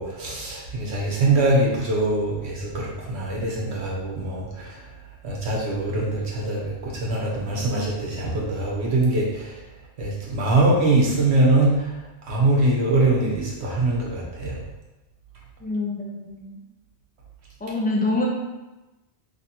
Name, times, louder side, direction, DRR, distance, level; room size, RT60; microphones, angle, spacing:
voice 1, 0.0-4.7 5.2-9.6 10.0-11.9 12.3-14.6, right 2 dB, 70° right, -3 dB, 1.2 m, -23 dB
voice 2, 15.6-16.5 17.6-18.2, left 2 dB, 10° left, -3 dB, 0.5 m, -25 dB
3.2 x 2.9 x 4.1 m, 1.1 s
omnidirectional pair, 1.1 m